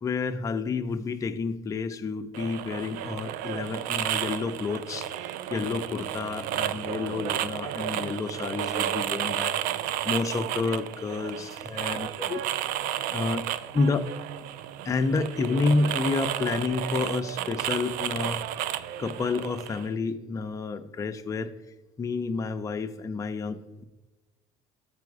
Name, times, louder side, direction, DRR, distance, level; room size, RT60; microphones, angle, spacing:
voice 1, 0.0-9.5 10.0-12.4 13.1-13.4 13.7-14.0 14.8-18.4 19.0-21.5 22.0-23.8, left 4 dB, 20° left, 6 dB, 0.5 m, -29 dB
sound 1, 2.3-19.9, right 11 dB, 70° right, 0.4 m, -32 dB
7.5 x 4.7 x 4.8 m, 1.1 s
supercardioid pair, 105°, 15 cm